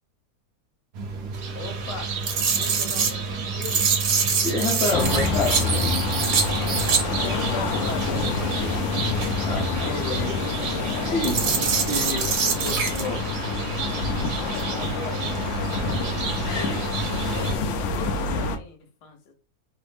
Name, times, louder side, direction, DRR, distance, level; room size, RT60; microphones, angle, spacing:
sound 1, 0.9-17.6, right 4 dB, 65° right, 1.1 m, -33 dB
sound 2, 1.3-17.5, right 6 dB, 85° right, 1.4 m, -28 dB
voice 1, 1.5-2.1 2.5-3.9 7.0-8.8 14.3-15.3 15.7-19.3, left 4 dB, 85° left, 1.4 m, -39 dB
voice 2, 4.4-5.9 9.4-10.5 11.0-13.3, left 2 dB, 55° left, 1.1 m, -29 dB
sound 3, 4.9-18.6, left 4 dB, 70° left, 0.7 m, -27 dB
3.3 x 2.0 x 3.2 m
omnidirectional pair, 1.7 m